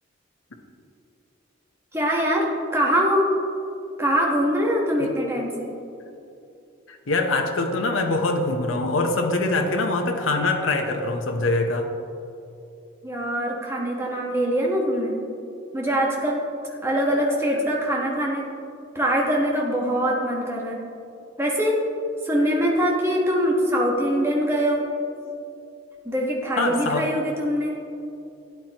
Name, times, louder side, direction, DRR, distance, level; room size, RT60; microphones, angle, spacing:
voice 1, 1.9-3.3 4.0-5.7 13.0-15.1 15.7-16.4 16.8-18.5 18.9-20.8 21.4-21.8 22.2-24.8 26.0-27.7, equal, 15° right, -2 dB, 1.3 m, -23 dB
voice 2, 6.9-11.9 26.6-27.1, left 2 dB, 85° left, 3 dB, 0.9 m, -24 dB
12.0 x 9.3 x 3.0 m, 2.7 s
head